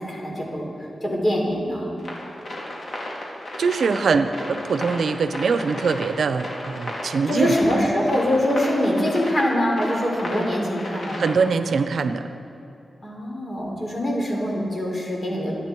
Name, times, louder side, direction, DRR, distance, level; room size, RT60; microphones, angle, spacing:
voice 1, 0.0-1.9 7.3-11.2 13.0-15.5, equal, 35° left, -2 dB, 3.7 m, -24 dB
sound 1, 2.0-11.7, left 1 dB, 60° left, 3.4 m, -34 dB
voice 2, 3.6-7.5 11.2-12.3, right 5 dB, 70° right, 10 dB, 0.6 m, -22 dB
25.0 x 10.0 x 4.6 m, 2.8 s
wide cardioid pair, 120°, 0 cm